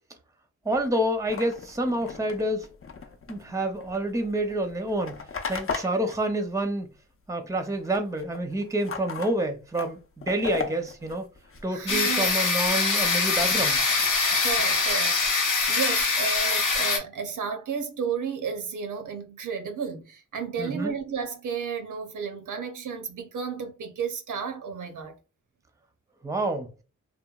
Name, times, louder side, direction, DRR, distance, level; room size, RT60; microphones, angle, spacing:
voice 1, 0.6-2.7 3.3-5.2 5.5-6.9 7.3-11.3 11.6-13.8 20.6-20.9 26.2-26.7, right 1 dB, 10° right, 0.5 m, -28 dB
sound 1, 0.7-7.3 7.5-12.1 12.6-14.8, left 5 dB, 45° left, 0.5 m, -39 dB
voice 2, 11.7-12.3 14.4-25.1, right 6 dB, 90° right, 0.6 m, -33 dB
sound 2, 11.9-17.0, left 4 dB, 90° left, 0.7 m, -23 dB
2.9 x 2.1 x 2.3 m
wide cardioid pair, 65°, 30 cm